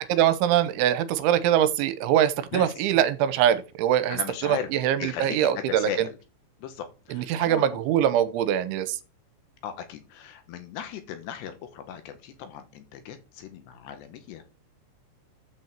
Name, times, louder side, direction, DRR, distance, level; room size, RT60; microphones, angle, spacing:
voice 1, 0.1-6.1 7.1-9.0, right 11 dB, 85° right, 3.1 m, -23 dB
voice 2, 4.1-4.7 5.0-6.2 6.6-8.0 9.6-14.4, left 8 dB, 70° left, 3.1 m, -37 dB
10.5 x 5.5 x 7.4 m
omnidirectional pair, 5.5 m